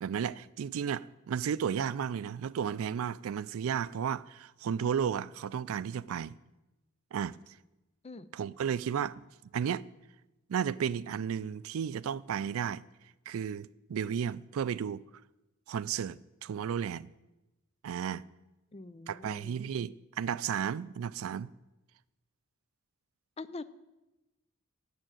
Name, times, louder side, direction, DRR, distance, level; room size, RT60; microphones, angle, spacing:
voice 1, 0.0-6.4 7.1-7.4 8.3-9.2 9.5-9.8 10.5-12.8 13.3-15.0 15.7-17.1 17.8-18.2 19.1-21.5, right 8 dB, 85° right, 0.4 m, -33 dB
voice 2, 18.7-19.7 23.4-23.7, left 3 dB, 30° left, 0.4 m, -44 dB
9.0 x 7.3 x 9.0 m
head